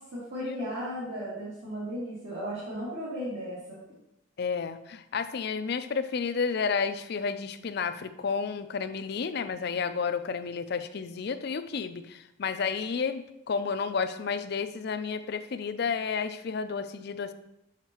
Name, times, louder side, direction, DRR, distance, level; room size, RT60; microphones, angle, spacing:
voice 1, 0.0-3.8, equal, 65° right, -12 dB, 2.4 m, -35 dB
voice 2, 4.4-17.3, left 5 dB, 55° left, 11 dB, 0.4 m, -31 dB
7.2 x 5.7 x 3.0 m, 0.84 s
head